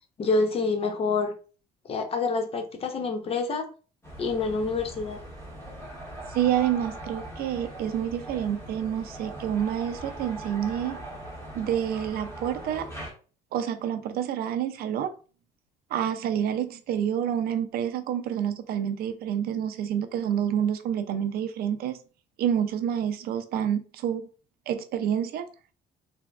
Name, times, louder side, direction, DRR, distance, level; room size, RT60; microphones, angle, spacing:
voice 1, 0.2-1.3 1.9-3.7 4.2-5.2, left 4 dB, 35° left, 6 dB, 0.6 m, -27 dB
sound 1, 4.0-13.1, right 1 dB, 15° left, 1.0 m, -40 dB
voice 2, 6.3-11.0 11.5-12.9 13.5-15.1 15.9-22.0 22.4-24.3 24.7-25.4, right 9 dB, 65° right, 9 dB, 0.4 m, -28 dB
3.3 x 2.2 x 2.3 m, 0.38 s
cardioid pair, 110°, 17 cm